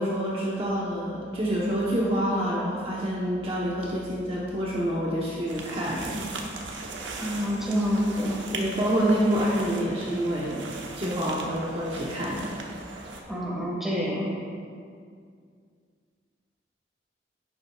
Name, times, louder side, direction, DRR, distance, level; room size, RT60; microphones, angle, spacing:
voice 1, 0.0-6.3 7.1-7.3 8.5-10.6 10.9-12.5, equal, 30° right, -6 dB, 1.0 m, -27 dB
sound 1, 5.5-13.2, right 3 dB, 85° right, 1.0 m, -39 dB
voice 2, 7.2-8.4 13.3-14.3, equal, ahead, -5 dB, 1.7 m, -27 dB
11.5 x 8.7 x 2.4 m, 2.2 s
head